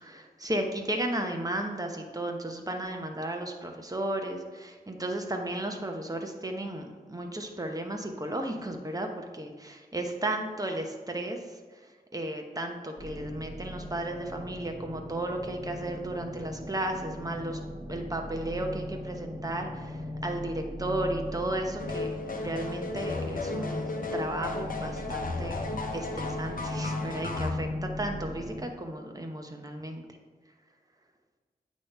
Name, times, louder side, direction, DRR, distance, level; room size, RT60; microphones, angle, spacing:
voice 1, 0.0-25.6 25.9-30.1, right 1 dB, 25° right, 3 dB, 1.0 m, -34 dB
sound 1, 13.0-28.7, left 1 dB, 65° right, 1.4 m, -39 dB
sound 2, 21.8-27.5, left 3 dB, 60° left, 0.8 m, -35 dB
8.5 x 3.2 x 5.4 m, 1.4 s
wide cardioid pair, 65°, 16 cm